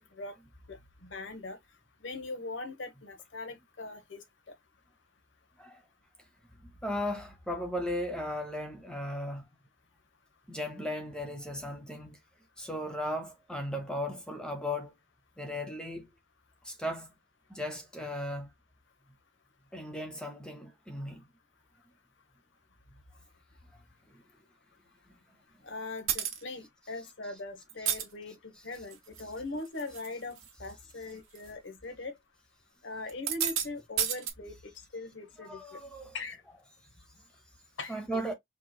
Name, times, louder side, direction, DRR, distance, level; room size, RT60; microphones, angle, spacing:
voice 1, 1.0-1.6 2.0-4.2 25.6-28.4 28.6-32.1 32.8-35.8 36.1-36.4 37.8-38.2, left 2 dB, 60° left, 1.1 m, -41 dB
voice 2, 6.6-9.5 10.5-12.2 12.6-14.9 15.4-16.1 16.6-17.1 17.5-18.5 19.7-21.3 24.1-24.2 35.4-36.2 37.9-38.3, equal, 5° left, 0.8 m, -36 dB
sound 1, 26.1-26.4 27.7-28.0 28.8-29.2 29.7-30.1 30.4-30.5 31.4-31.5 33.1-33.7 34.0-34.3, right 9 dB, 85° right, 1.2 m, -30 dB
4.5 x 3.0 x 2.2 m
head